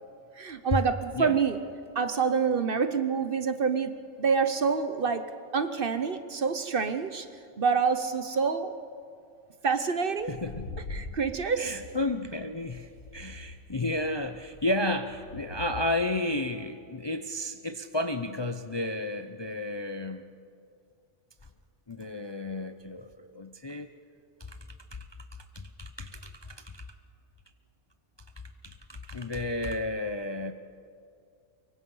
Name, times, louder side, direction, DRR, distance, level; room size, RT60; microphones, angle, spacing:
voice 1, 0.4-1.6 1.9-7.3 7.6-8.7 9.6-10.3 10.9-11.8, right 5 dB, 50° right, 10 dB, 1.0 m, -27 dB
sound 1, 10.2-15.8, left 3 dB, 90° left, 1.7 m, -43 dB
voice 2, 10.3-10.7 11.6-20.2 21.9-23.9 24.5-24.6 24.9-25.0 25.5-26.8 28.6-30.5, left 2 dB, 30° left, 8 dB, 0.6 m, -32 dB
24.5 x 23.0 x 5.6 m, 2.3 s
omnidirectional pair, 1.3 m